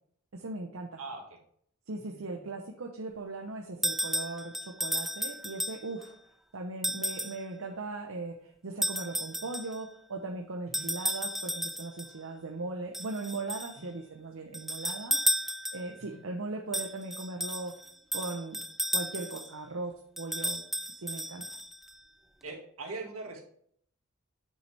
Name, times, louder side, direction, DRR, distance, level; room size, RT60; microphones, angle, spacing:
voice 1, 0.3-1.0 1.9-6.2 6.5-15.5 15.7-17.7 18.1-18.6 18.9-20.6 21.0-21.4, right 3 dB, 75° right, 2 dB, 0.8 m, -39 dB
voice 2, 1.0-1.4 2.0-2.5 10.7-10.9 13.8-13.9 16.0-16.2 22.4-23.4, right 3 dB, 90° right, 2 dB, 1.9 m, -42 dB
sound 1, 3.8-6.1 6.8-7.4 8.8-9.8 10.7-12.1 12.9-13.8 14.5-16.0 16.7-19.5 20.2-21.9, equal, ahead, 0.4 m, -33 dB
7.9 x 6.2 x 3.3 m, 0.65 s
head